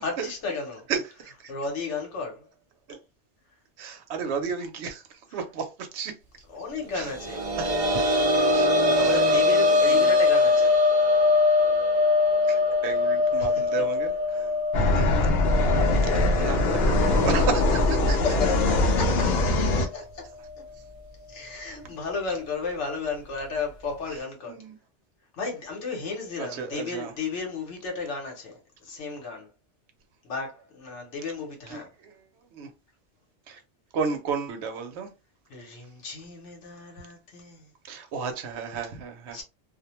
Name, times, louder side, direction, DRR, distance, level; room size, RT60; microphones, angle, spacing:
voice 1, 0.0-0.9 1.5-2.5 6.5-7.5 8.5-8.6 9.0-10.8 13.4-13.6 18.1-20.3 21.3-24.6 25.3-29.5 30.2-31.9 35.5-37.7 39.3-39.4, left 4 dB, 85° left, 1.1 m, -34 dB
voice 2, 0.9-1.5 2.9-3.0 3.8-5.0 5.3-6.2 6.9-8.1 8.5-9.4 9.8-10.2 10.6-10.7 12.5-15.1 15.6-15.8 16.1-18.2 24.5-24.8 26.4-27.1 31.7-32.2 32.5-32.7 33.5-33.6 33.9-35.1 37.8-39.4, right 5 dB, 75° right, 0.9 m, -33 dB
sound 1, 7.0-18.5 18.8-18.9 20.5-20.6, left 3 dB, 55° right, 0.3 m, -23 dB
sound 2, 14.7-19.9, left 2 dB, 70° left, 0.8 m, -22 dB
2.4 x 2.1 x 2.9 m
omnidirectional pair, 1.2 m